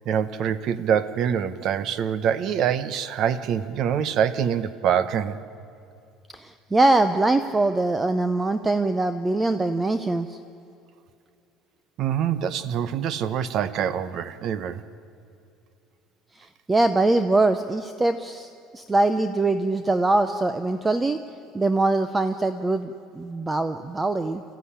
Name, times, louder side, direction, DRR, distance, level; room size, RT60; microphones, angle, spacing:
voice 1, 0.0-5.4 12.0-14.8, right 8 dB, 45° right, 14 dB, 0.8 m, -25 dB
voice 2, 6.3-10.4 16.4-21.2 21.5-24.4, right 2 dB, 10° right, 10 dB, 0.5 m, -23 dB
29.5 x 14.5 x 10.0 m, 2.5 s
cardioid pair, 170°, 0 cm